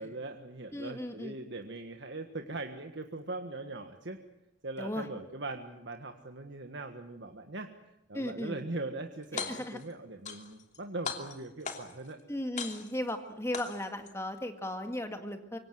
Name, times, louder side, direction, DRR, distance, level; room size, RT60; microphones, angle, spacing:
voice 1, 0.0-4.2 4.6-7.7 8.1-12.2, right 2 dB, 65° right, 5 dB, 1.6 m, -40 dB
voice 2, 0.7-1.4 4.8-5.1 8.1-8.6 9.5-9.8 12.3-15.6, left 1 dB, 15° left, 6 dB, 2.0 m, -36 dB
sound 1, 9.2-9.8 10.2-10.8 11.0-12.1 12.6-13.1 13.5-14.1, left 6 dB, 40° left, 2.9 m, -38 dB
26.0 x 23.5 x 7.7 m, 0.89 s
head